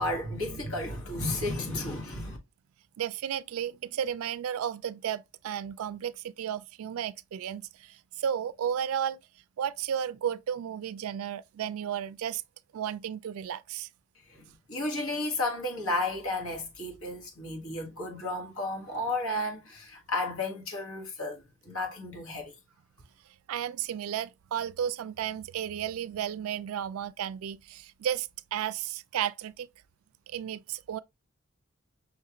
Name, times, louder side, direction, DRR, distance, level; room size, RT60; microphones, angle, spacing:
voice 1, 0.0-2.4 14.2-21.4 21.6-22.6, left 2 dB, 70° left, 1.4 m, -33 dB
voice 2, 3.0-9.2 9.6-12.4 12.7-13.9 23.5-29.7 30.3-31.0, right 9 dB, 80° right, 0.3 m, -33 dB
5.6 x 2.4 x 2.8 m
head